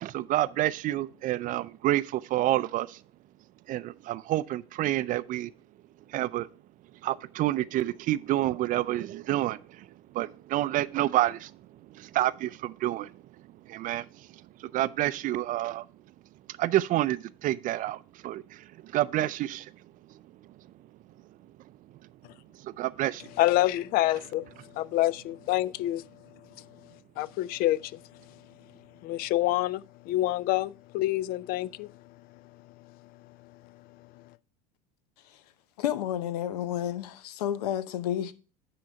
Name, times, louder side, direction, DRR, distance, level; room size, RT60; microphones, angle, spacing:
voice 1, 0.0-3.0 3.7-5.5 6.1-6.5 7.0-9.6 10.1-11.5 12.0-13.1 13.7-14.0 14.7-15.8 16.6-18.4 18.9-19.6 22.8-23.2, right 14 dB, 45° right, 0.4 m, -28 dB
voice 2, 23.2-26.1 26.6-28.1 28.3-28.4 29.0-32.4 32.8-33.0 33.4-33.5 34.2-34.3, left 16 dB, 50° left, 0.4 m, -28 dB
voice 3, 35.8-38.3, left 11 dB, 85° left, 0.7 m, -30 dB
9.6 x 3.9 x 5.7 m
supercardioid pair, 105°, 20 cm